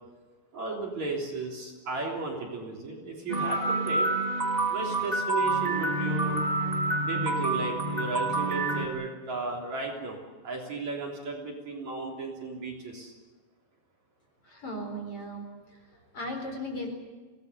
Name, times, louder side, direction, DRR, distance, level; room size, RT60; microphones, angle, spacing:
voice 1, 0.5-4.1 4.7-6.4 7.0-10.2 10.4-13.1, right 3 dB, 45° right, -1 dB, 4.5 m, -35 dB
sound 1, 3.3-8.9, right 2 dB, 10° right, 3.1 m, -28 dB
voice 2, 14.4-15.4 16.1-16.9, equal, 35° left, 3 dB, 5.1 m, -36 dB
26.0 x 19.0 x 8.2 m, 1.3 s
omnidirectional pair, 4.8 m